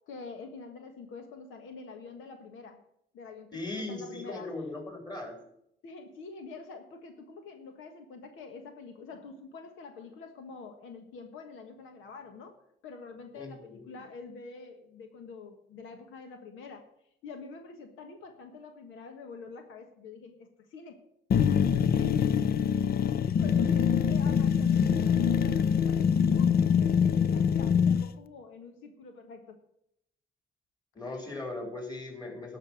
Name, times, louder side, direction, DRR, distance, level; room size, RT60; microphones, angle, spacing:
voice 1, 0.0-2.8 3.1-4.5 5.8-12.6 12.8-16.9 17.2-21.0 21.6-22.2 22.5-22.8 23.4-29.6, left 4 dB, 85° left, 5 dB, 1.5 m, -46 dB
voice 2, 3.5-5.3 13.4-13.9 23.8-24.0 30.9-32.6, left 2 dB, 20° left, 1 dB, 4.3 m, -38 dB
sound 1, 21.3-28.1, left 7 dB, 50° left, 0.6 m, -24 dB
12.0 x 6.0 x 8.9 m, 0.76 s
cardioid pair, 90°, 20 cm